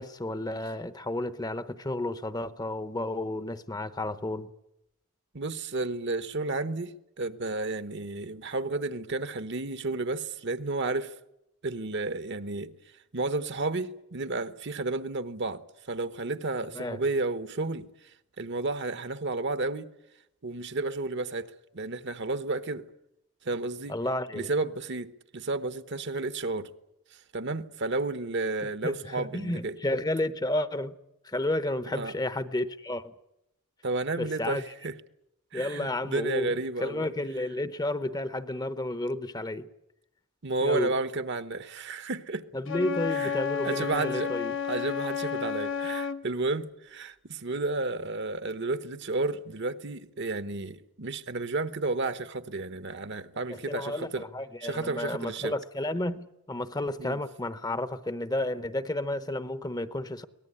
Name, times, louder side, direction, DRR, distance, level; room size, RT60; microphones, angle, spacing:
voice 1, 0.0-4.5 16.7-17.0 23.9-24.5 28.8-30.9 31.2-33.1 34.2-34.6 35.5-39.7 40.6-40.9 42.5-44.6 53.5-60.2, left 1 dB, 20° left, 0.8 m, -32 dB
voice 2, 5.3-6.9 7.2-11.1 11.6-12.7 13.1-17.9 18.4-19.9 20.4-21.5 21.7-22.8 23.4-23.9 24.3-26.7 27.3-29.8 31.9-32.1 33.8-34.9 35.5-37.1 40.4-42.4 43.2-43.3 43.6-44.3 44.7-54.2 54.6-55.5 57.0-57.2, right 3 dB, 55° right, 1.1 m, -32 dB
Wind instrument woodwind instrument, 42.7-46.2, left 7 dB, 60° left, 1.0 m, -31 dB
23.0 x 18.5 x 9.9 m
head